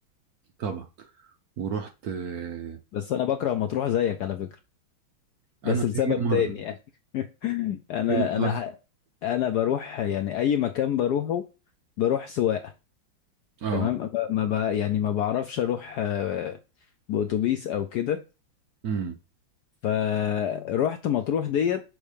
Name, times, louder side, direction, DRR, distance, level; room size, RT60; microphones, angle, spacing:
voice 1, 0.6-1.3 1.6-2.8 5.6-6.5 8.1-8.6 13.6-13.9 18.8-19.1, right 6 dB, 65° right, 1.0 m, -30 dB
voice 2, 2.9-4.5 5.6-6.7 7.1-8.7 9.2-11.4 12.0-12.7 13.7-16.6 17.1-18.2 19.8-21.8, left 10 dB, 75° left, 0.9 m, -26 dB
6.3 x 3.1 x 4.9 m
omnidirectional pair, 2.2 m